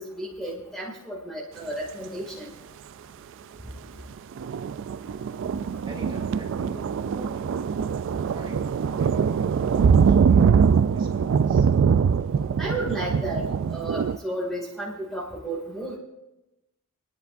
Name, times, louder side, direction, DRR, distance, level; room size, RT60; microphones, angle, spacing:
voice 1, 0.0-2.5 12.6-13.4 13.7-16.0, right 1 dB, ahead, -5 dB, 2.2 m, -33 dB
sound 1, 4.3-14.2, right 6 dB, 60° right, 0.3 m, -22 dB
voice 2, 5.9-7.7 8.3-8.6 8.9-11.7, right 1 dB, 20° right, -3 dB, 2.9 m, -44 dB
28.5 x 10.5 x 2.6 m, 0.96 s
head